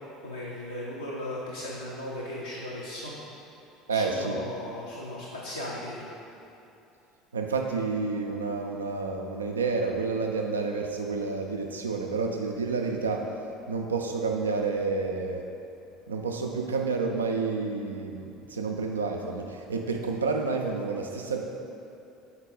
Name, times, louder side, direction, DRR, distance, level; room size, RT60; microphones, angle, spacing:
voice 1, 0.2-3.1 3.9-6.1, left 1 dB, 85° left, -6 dB, 0.6 m, -37 dB
voice 2, 3.9-4.4 7.3-15.4 16.1-21.4, right 4 dB, 80° right, 2 dB, 0.3 m, -29 dB
4.5 x 4.3 x 5.2 m, 2.8 s
figure-of-eight pair, 65°, 0 cm